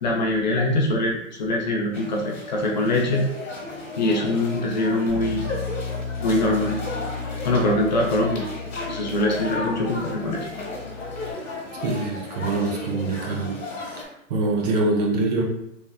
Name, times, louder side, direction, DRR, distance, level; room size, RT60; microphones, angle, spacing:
voice 1, 0.0-3.2 4.0-5.4 6.2-6.8 7.4-8.5 8.9-10.5, left 1 dB, 35° left, 0 dB, 0.4 m, -23 dB
sound 1, 1.9-14.1, left 2 dB, 65° left, 1.2 m, -34 dB
Bass guitar, 5.1-11.3, left 4 dB, 70° right, 1.2 m, -34 dB
voice 2, 11.8-13.6 13.8-15.4, right 2 dB, 30° right, 0 dB, 0.5 m, -25 dB
3.1 x 2.8 x 2.3 m, 0.79 s
hypercardioid pair, 125°, 40 cm